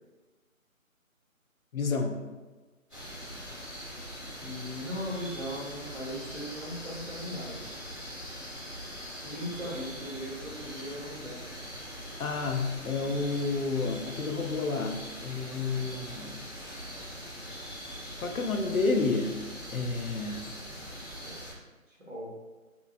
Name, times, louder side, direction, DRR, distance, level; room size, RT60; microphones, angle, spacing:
voice 1, 1.7-2.2 12.2-16.5 18.2-19.3 19.7-20.5, left 4 dB, 75° left, 5 dB, 0.6 m, -30 dB
sound 1, 2.9-21.5, equal, 25° right, 1.3 m, -42 dB
voice 2, 4.4-7.7 9.2-11.5 21.9-22.3, equal, 60° right, -5 dB, 1.3 m, -38 dB
3.4 x 2.9 x 2.5 m, 1.3 s
figure-of-eight pair, 180°, 42 cm